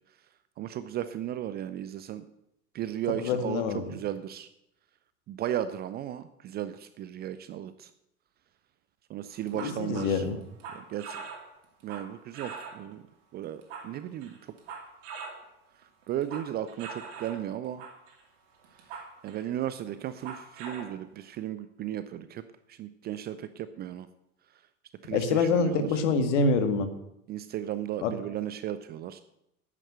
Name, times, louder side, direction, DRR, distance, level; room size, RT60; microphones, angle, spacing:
voice 1, 0.6-2.2 2.7-3.6 3.9-4.5 5.3-7.9 9.1-10.3 10.7-11.2 11.8-13.0 13.3-14.4 16.1-17.8 19.2-22.4 22.7-24.1 25.0-25.9 27.3-29.2, right 11 dB, 25° right, 13 dB, 0.5 m, -35 dB
voice 2, 3.2-4.0 9.6-10.4 25.1-26.9 28.0-28.1, left 4 dB, 55° left, 9 dB, 1.9 m, -26 dB
sound 1, 9.3-12.9 13.4-15.4 15.8-17.4 17.8-18.2 18.6-19.6 20.0-20.9, right 5 dB, 55° right, 2.5 m, -42 dB
9.9 x 9.0 x 7.8 m, 0.81 s
figure-of-eight pair, 80°, 43 cm